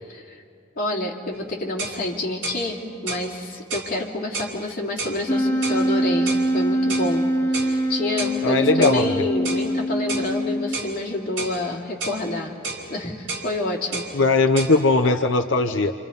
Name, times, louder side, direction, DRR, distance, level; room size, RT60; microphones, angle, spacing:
voice 1, 0.1-0.4 0.8-12.5 12.9-14.1, left 2 dB, 45° left, -2 dB, 3.2 m, -28 dB
sound 1, 1.3-1.4 1.8-2.0 2.4-2.6 3.1-3.3 3.7-3.9 4.3-4.5 5.0-5.2 5.6-5.8 6.3-6.5 6.9-7.1 7.5-7.7 8.2-8.4 8.8-9.0 9.4-9.7 10.1-10.3 10.7-10.9 11.4-11.6 12.0-12.2 12.6-12.8 13.3-13.5 13.9-14.1 14.6-14.8, right 3 dB, 70° right, 4.7 m, -31 dB
Wind instrument woodwind instrument, 5.3-10.9, equal, 10° left, 1.9 m, -23 dB
voice 2, 8.4-9.1 14.1-15.9, left 3 dB, 75° left, 4 dB, 0.9 m, -19 dB
29.0 x 28.0 x 5.5 m, 2.4 s
head